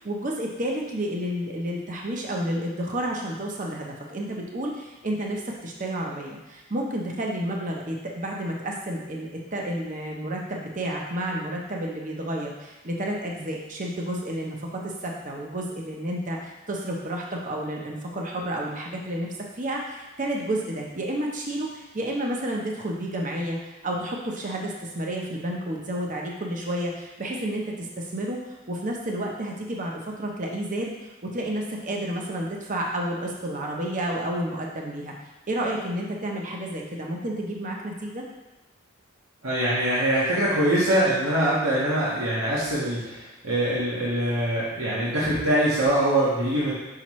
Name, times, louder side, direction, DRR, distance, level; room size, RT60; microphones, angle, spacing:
voice 1, 0.0-19.3 19.6-28.4 28.7-35.1 35.5-38.2, right 1 dB, 35° right, -1 dB, 0.8 m, -30 dB
voice 2, 39.4-46.7, right 1 dB, 90° right, -8 dB, 1.5 m, -23 dB
5.7 x 5.6 x 3.1 m, 1.1 s
head